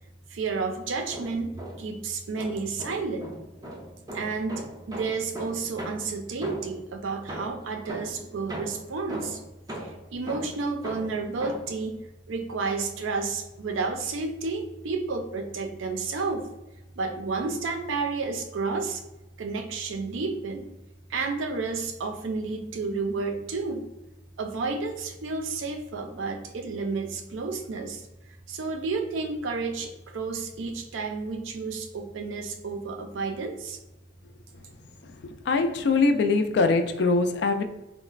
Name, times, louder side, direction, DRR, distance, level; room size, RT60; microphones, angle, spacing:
voice 1, 0.3-3.3 4.1-9.4 9.8-16.5 17.0-19.0 19.4-20.7 21.1-23.9 24.4-28.0 28.5-33.8, right 4 dB, 80° right, 6 dB, 0.4 m, -31 dB
sound 1, 1.1-2.0 2.4-6.9 7.3-11.8, right 1 dB, 20° right, 0.4 m, -39 dB
voice 2, 35.2-37.6, left 3 dB, 60° left, 8 dB, 0.3 m, -23 dB
3.8 x 2.1 x 2.4 m, 1.0 s
head